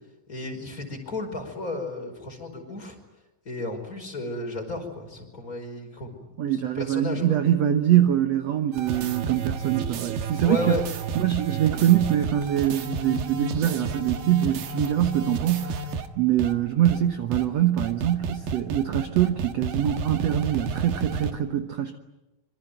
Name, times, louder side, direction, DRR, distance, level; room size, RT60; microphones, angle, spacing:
voice 1, 0.3-2.9 3.4-7.2 10.4-10.8, left 2 dB, 25° left, 3 dB, 5.2 m, -33 dB
voice 2, 6.4-10.8 11.2-22.0, right 11 dB, 60° right, 7 dB, 1.9 m, -24 dB
sound 1, 8.7-16.1 16.4-16.5 16.9-17.0 17.3-17.4 17.8-21.3, right 4 dB, 90° right, 3.3 m, -31 dB
26.0 x 25.0 x 9.2 m, 1.0 s
omnidirectional pair, 4.0 m